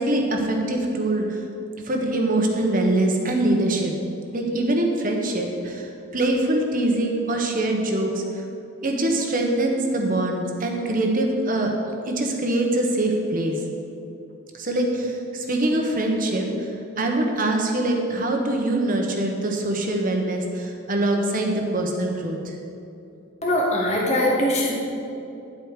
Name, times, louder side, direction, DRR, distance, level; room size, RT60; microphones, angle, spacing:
voice 1, 0.0-1.4 1.8-4.0 4.3-8.4 8.8-11.7 12.0-13.6 14.5-16.7 17.0-22.6, right 1 dB, 40° right, 1 dB, 1.2 m, -23 dB
voice 2, 23.4-24.7, left 1 dB, 30° left, -3 dB, 1.5 m, -21 dB
11.0 x 8.0 x 5.0 m, 2.8 s
head